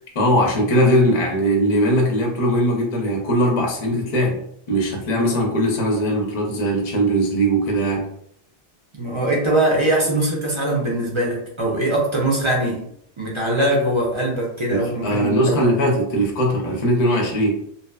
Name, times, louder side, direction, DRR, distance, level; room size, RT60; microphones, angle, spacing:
voice 1, 0.1-4.4 4.7-8.1 14.7-17.6, equal, 45° left, 0 dB, 0.6 m, -20 dB
voice 2, 8.9-12.8 13.2-15.6, right 1 dB, 35° right, -3 dB, 0.5 m, -21 dB
2.7 x 2.2 x 2.2 m, 0.69 s
omnidirectional pair, 1.1 m